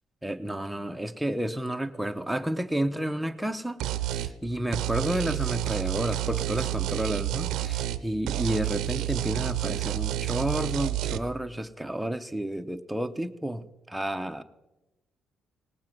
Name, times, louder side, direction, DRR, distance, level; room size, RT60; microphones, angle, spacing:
voice 1, 0.2-3.8 4.1-14.4, right 1 dB, 5° right, 7 dB, 0.8 m, -31 dB
sound 1, 3.8-4.3 4.7-8.0 8.3-11.2, right 14 dB, 85° right, 0.6 m, -29 dB
19.0 x 7.4 x 6.0 m, 1.0 s
cardioid pair, 90°, 0 cm